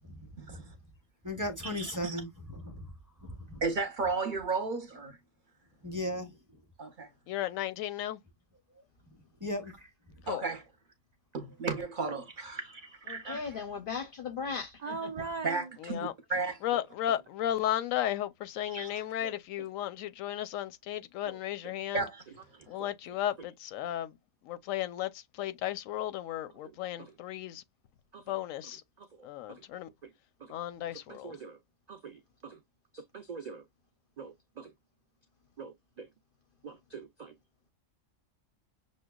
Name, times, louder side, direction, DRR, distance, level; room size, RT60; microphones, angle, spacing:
voice 1, 0.1-0.7 1.2-2.9 3.2-3.6 5.8-6.4 8.8-8.9 9.4-9.7, left 1 dB, 20° right, 0.7 m, -37 dB
voice 2, 1.8-2.2 3.6-5.2 6.8-7.1 10.3-10.6 11.3-13.4 15.4-16.6 18.7-19.1 21.9-22.2, right 4 dB, 45° right, 0.8 m, -34 dB
voice 3, 7.3-8.2 10.3-10.4 15.8-16.1 16.6-22.0 22.7-24.1 24.5-25.1 25.4-27.6 28.3-28.8 29.2-29.9 30.5-31.3, left 12 dB, 90° left, 1.0 m, -34 dB
voice 4, 13.1-15.3, left 5 dB, 60° left, 0.6 m, -38 dB
voice 5, 14.8-15.7 19.2-19.4 21.3-21.4 22.8-22.9 27.0-27.1 28.1-28.2 30.9-31.6 31.9-32.6 32.9-33.6 34.2-34.7 35.6-36.1 36.6-37.3, right 4 dB, 65° right, 0.4 m, -42 dB
6.2 x 2.2 x 2.2 m
omnidirectional pair, 1.3 m